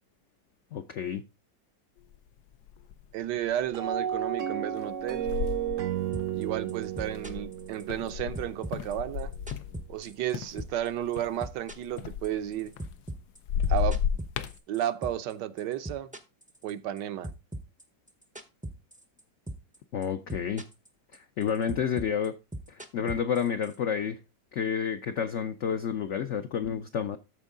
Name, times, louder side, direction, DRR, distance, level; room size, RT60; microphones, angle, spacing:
voice 1, 0.7-1.2 19.9-20.6 21.1-22.3 22.7-24.2 24.5-27.2, left 7 dB, 70° left, 0.7 m, -30 dB
sound 1, 2.1-2.2 2.6-3.1 3.6-3.9 4.8-10.0 10.3-13.1 13.4-14.6, left 8 dB, 90° left, 1.4 m, -33 dB
voice 2, 3.1-5.3 6.3-9.3 9.9-12.7 13.7-14.0 14.7-16.1 16.6-17.3, right 11 dB, 75° right, 1.3 m, -32 dB
sound 2, 3.7-8.9, right 10 dB, 60° right, 0.8 m, -33 dB
sound 3, 6.1-6.4 6.7-8.1 8.3-10.3 10.6-10.9 11.1-15.3 15.6-17.0 17.2-19.2 19.5-19.8 20.0-20.9 21.1-23.8, right 1 dB, 10° right, 0.3 m, -39 dB
13.5 x 4.6 x 3.7 m
omnidirectional pair, 1.9 m